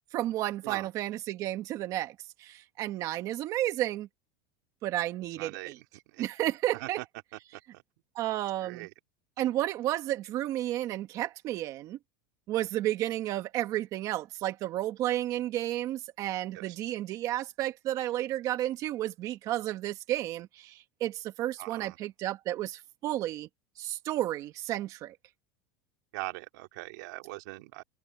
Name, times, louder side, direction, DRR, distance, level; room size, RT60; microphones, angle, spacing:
voice 1, 0.1-4.1 4.8-5.8 6.2-7.0 8.2-8.9 9.4-12.0 12.5-23.5 23.8-25.2, right 14 dB, 35° right, 1.9 m, -32 dB
voice 2, 5.4-5.7 6.1-6.3 6.8-7.0 7.3-7.6 8.6-8.9 16.5-16.8 21.6-22.0 26.1-27.8, right 22 dB, 65° right, 2.6 m, -41 dB
supercardioid pair, 170°, 10 cm